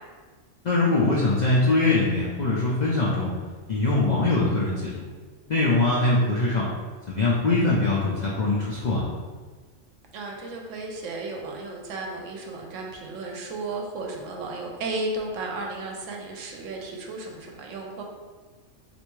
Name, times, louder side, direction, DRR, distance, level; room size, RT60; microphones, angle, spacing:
voice 1, 0.6-3.3 3.7-4.9 5.5-6.7 7.1-9.1, left 2 dB, 65° left, -5 dB, 0.4 m, -22 dB
voice 2, 10.1-18.0, right 2 dB, 75° right, 0 dB, 0.9 m, -34 dB
3.3 x 2.6 x 3.1 m, 1.4 s
omnidirectional pair, 1.4 m